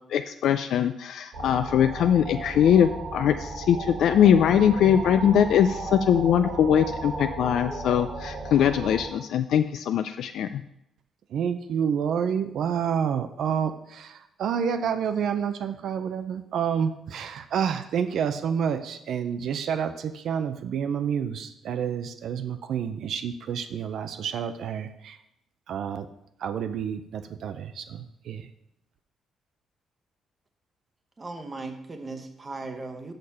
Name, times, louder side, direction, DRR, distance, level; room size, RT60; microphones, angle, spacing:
voice 1, 0.1-10.6, left 9 dB, 65° left, 9 dB, 0.3 m, -22 dB
sound 1, 1.3-9.1, right 3 dB, 80° right, 2.3 m, -35 dB
voice 2, 11.3-25.2 25.7-26.1 26.4-28.5, right 7 dB, 60° right, 9 dB, 0.5 m, -29 dB
voice 3, 31.2-33.1, right 3 dB, 20° right, 6 dB, 0.9 m, -37 dB
6.6 x 6.5 x 5.6 m, 0.79 s
cardioid pair, 160°, 0 cm